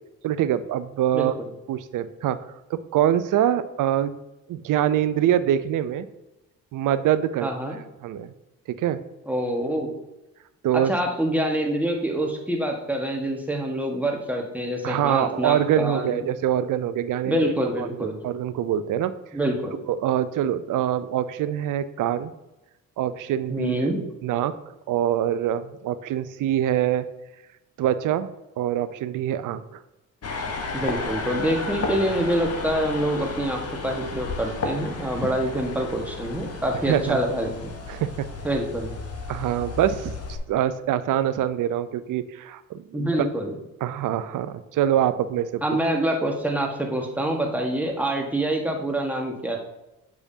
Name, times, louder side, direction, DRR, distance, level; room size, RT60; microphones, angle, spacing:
voice 1, 0.2-1.3 1.7-2.4 2.7-4.2 4.5-6.1 6.7-7.5 8.0-8.3 8.7-9.0 10.6-10.9 14.8-17.5 17.8-19.1 19.9-22.3 23.0-23.7 24.2-27.1 27.8-28.3 28.6-29.8 36.8-37.2 37.9-38.3 39.3-43.1 43.8-45.6, right 11 dB, 50° right, 13 dB, 0.5 m, -24 dB
voice 2, 7.4-7.8 9.3-9.9 10.7-16.2 17.2-18.2 19.3-19.8 23.5-24.0 30.7-37.7 38.4-38.9 42.9-43.5 45.6-49.6, right 1 dB, 5° right, 1 dB, 1.3 m, -26 dB
sound 1, 30.2-40.4, left 3 dB, 35° left, 1.0 m, -33 dB
7.0 x 4.9 x 2.7 m, 0.98 s
hypercardioid pair, 50°, 42 cm